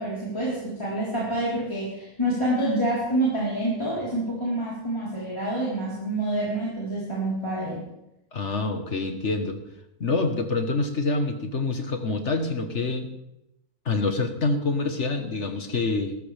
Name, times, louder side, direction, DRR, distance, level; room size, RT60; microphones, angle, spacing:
voice 1, 0.0-7.8, right 1 dB, 15° left, -8 dB, 4.0 m, -27 dB
voice 2, 8.3-9.6 10.0-13.1 13.8-16.2, left 3 dB, 50° left, 6 dB, 1.5 m, -26 dB
19.5 x 13.5 x 3.4 m, 0.87 s
omnidirectional pair, 1.6 m